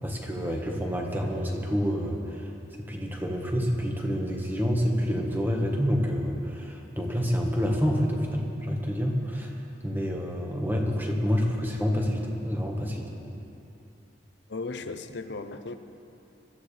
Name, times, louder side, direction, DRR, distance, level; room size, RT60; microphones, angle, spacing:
voice 1, 0.0-13.1, equal, 10° right, 0 dB, 1.5 m, -28 dB
voice 2, 14.5-15.8, left 3 dB, 70° left, 9 dB, 0.7 m, -36 dB
22.0 x 13.5 x 3.4 m, 2.7 s
head